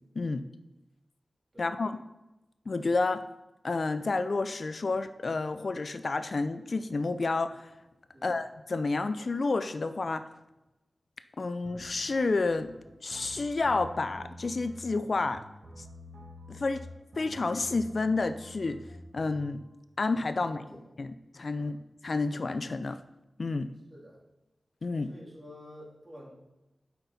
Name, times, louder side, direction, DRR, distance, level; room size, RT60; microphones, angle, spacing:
voice 1, 1.6-2.0 2.7-3.2 3.6-7.7 8.2-10.3 11.4-12.7 13.0-15.4 15.8-15.9 16.5-16.9 17.2-18.8 19.1-19.6 20.0-20.6 21.0-21.8 22.0-23.0 23.4-23.7 24.8-25.1, left 3 dB, 60° left, 11 dB, 0.3 m, -30 dB
sound 1, 11.6-19.5, equal, 70° right, 1.5 m, -48 dB
voice 2, 20.6-21.0 21.5-21.7 23.9-24.2 25.1-26.3, equal, 40° right, -4 dB, 2.5 m, -50 dB
8.2 x 5.7 x 4.0 m, 0.98 s
wide cardioid pair, 95°, 0 cm